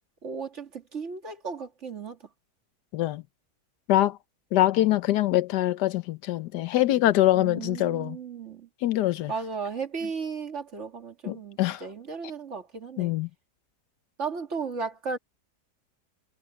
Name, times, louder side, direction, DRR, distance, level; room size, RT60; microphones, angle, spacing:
voice 1, 0.2-2.2 7.3-8.7 9.3-13.1 14.2-15.2, right 5 dB, 45° right, 2.5 m, -35 dB
voice 2, 2.9-3.2 3.9-4.2 4.5-8.2 8.8-9.3 11.3-11.8 13.0-13.3, left 14 dB, 90° left, 1.4 m, -24 dB
omnidirectional pair, 1.7 m